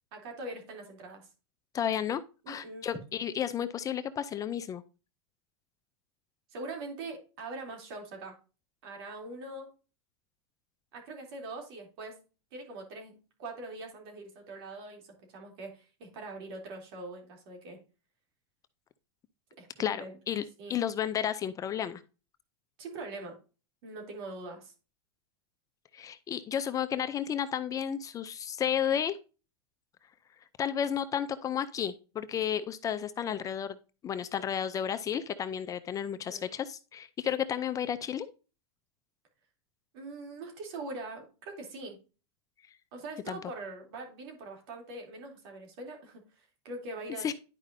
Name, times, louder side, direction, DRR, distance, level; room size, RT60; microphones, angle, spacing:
voice 1, 0.1-1.3 2.4-2.9 6.5-8.3 8.8-9.7 10.9-12.2 12.5-17.8 19.6-20.2 20.6-20.8 22.8-23.4 23.8-24.7 36.3-36.5 39.9-42.0 42.9-47.3, right 2 dB, 60° right, 2 dB, 3.1 m, -43 dB
voice 2, 1.7-4.8 19.8-20.4 20.7-22.0 25.9-29.2 30.6-33.8 34.0-38.3 43.3-43.4 47.2-47.3, left 9 dB, 25° left, 12 dB, 0.5 m, -32 dB
10.5 x 5.0 x 2.6 m, 0.33 s
hypercardioid pair, 120°, 14 cm